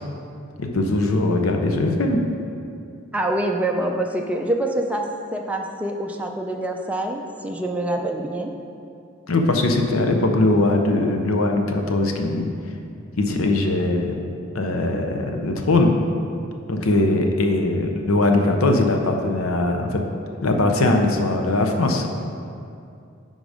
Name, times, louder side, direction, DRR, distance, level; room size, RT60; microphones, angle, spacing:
voice 1, 0.6-2.2 9.3-12.5 13.2-14.3 14.5-16.0 16.7-20.0 20.4-22.1, left 2 dB, 85° left, 3 dB, 0.7 m, -20 dB
voice 2, 3.1-5.0 5.3-8.5 16.6-16.9, right 1 dB, 5° right, 1 dB, 0.4 m, -25 dB
10.0 x 3.9 x 4.9 m, 2.5 s
head